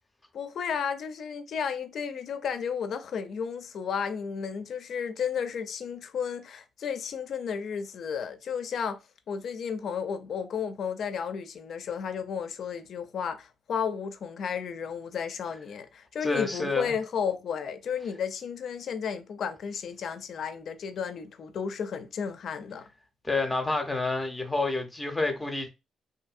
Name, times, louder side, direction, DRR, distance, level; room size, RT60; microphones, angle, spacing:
voice 1, 0.3-9.0 9.3-22.8, left 7 dB, 60° left, 0.4 m, -33 dB
voice 2, 16.2-16.9 23.2-25.7, left 3 dB, 15° left, 0.6 m, -29 dB
2.6 x 2.6 x 2.4 m
cardioid pair, 90°, 0 cm